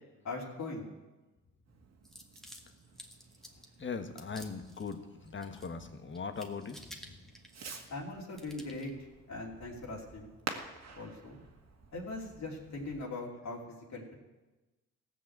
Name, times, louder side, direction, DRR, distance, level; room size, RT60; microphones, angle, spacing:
voice 1, 0.2-0.9 7.9-8.9 9.3-10.3 10.9-11.4 11.9-14.2, left 2 dB, 55° left, -2 dB, 2.9 m, -40 dB
Fireworks, 1.7-13.0, right 5 dB, 50° right, 1.9 m, -50 dB
sound 1, 2.0-3.7 4.2-4.9 5.3-5.9 6.1-8.0 8.3-8.9, equal, ahead, 1.9 m, -52 dB
voice 2, 3.8-7.2, left 5 dB, 35° left, 7 dB, 1.5 m, -40 dB
16.0 x 6.2 x 7.9 m, 1.1 s
supercardioid pair, 65°, 33 cm